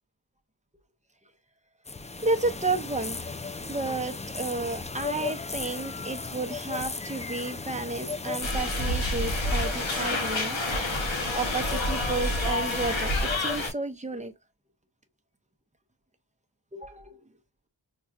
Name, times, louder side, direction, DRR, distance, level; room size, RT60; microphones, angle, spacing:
sound 1, 1.8-13.7, left 3 dB, 15° left, 0.3 m, -36 dB
voice 1, 2.2-3.3 3.7-10.6 10.9-14.3 16.7-17.2, right 3 dB, 15° right, 0.7 m, -32 dB
sound 2, 8.4-13.7, left 1 dB, 85° left, 1.1 m, -28 dB
5.5 x 2.3 x 2.4 m
wide cardioid pair, 40°, 45 cm